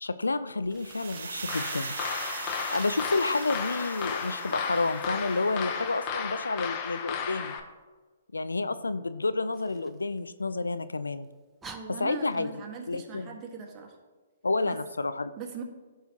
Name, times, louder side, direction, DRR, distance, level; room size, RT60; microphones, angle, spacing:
voice 1, 0.0-1.9 2.7-7.5 8.3-11.3 12.0-12.5 12.9-13.4 14.4-15.3, left 3 dB, 85° left, 13 dB, 0.4 m, -30 dB
Fire, 0.6-3.6 9.5-10.8 11.2-11.3 11.6-12.8, right 4 dB, 10° right, 0.8 m, -50 dB
sound 1, 0.7-5.8, right 5 dB, 65° right, 0.8 m, -40 dB
sound 2, 1.5-7.6, left 7 dB, 35° left, 0.9 m, -34 dB
voice 2, 11.6-14.0 14.6-14.8 15.4-15.6, right 6 dB, 30° right, 1 dB, 1.5 m, -40 dB
15.5 x 5.6 x 2.9 m, 1.4 s
figure-of-eight pair, 125°, 0 cm